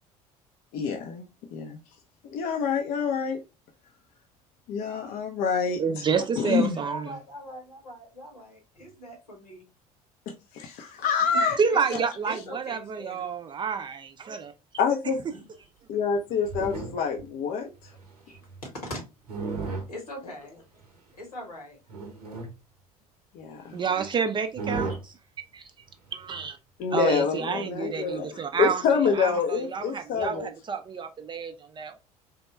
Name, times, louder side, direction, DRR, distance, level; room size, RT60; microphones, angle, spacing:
voice 1, 0.7-1.2 1.5-1.8 2.2-3.4 4.7-6.0 6.4-6.8 10.3-11.6 14.8-15.2 15.9-17.9 23.3-23.8 26.8-28.3 28.6-30.5, left 6 dB, 45° left, 0.5 m, -27 dB
voice 2, 5.8-7.1 11.6-14.5 23.7-24.9 25.5-25.6 26.1-26.6 26.9-28.8 29.2-31.9, right 6 dB, 25° right, 0.4 m, -29 dB
voice 3, 6.9-9.7 11.2-11.4 11.7-13.3 15.3-15.4 18.3-19.3 19.9-20.6 21.1-21.8 23.8-24.2 30.2-30.3, equal, 80° left, 1.2 m, -41 dB
sound 1, 16.2-17.2 17.8-18.6 19.3-19.9 20.8-20.9 21.9-22.5 23.6-23.7 24.0-24.1 24.5-25.0 26.3-26.5, right 3 dB, 75° right, 0.7 m, -34 dB
3.4 x 2.1 x 3.0 m
figure-of-eight pair, 60°, 20 cm